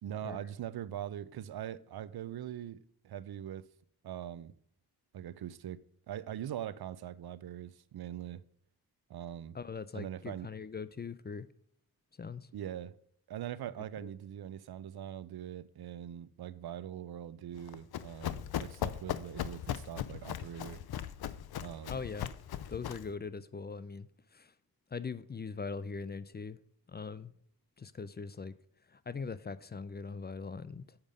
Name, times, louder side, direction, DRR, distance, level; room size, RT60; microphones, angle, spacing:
voice 1, 0.0-3.7 4.0-4.5 5.1-8.4 9.1-9.6 9.9-10.5 12.5-12.9 13.3-20.8 21.6-22.0, right 11 dB, 85° right, 0.5 m, -42 dB
voice 2, 9.5-11.5 12.2-12.5 14.0-14.1 21.9-22.3 22.7-24.5 24.9-26.6 26.9-27.3 27.8-28.5 28.8-31.0, left 5 dB, 30° left, 0.4 m, -41 dB
Run, 17.6-23.1, left 10 dB, 90° left, 0.5 m, -39 dB
7.3 x 5.2 x 6.3 m
wide cardioid pair, 100°, 37 cm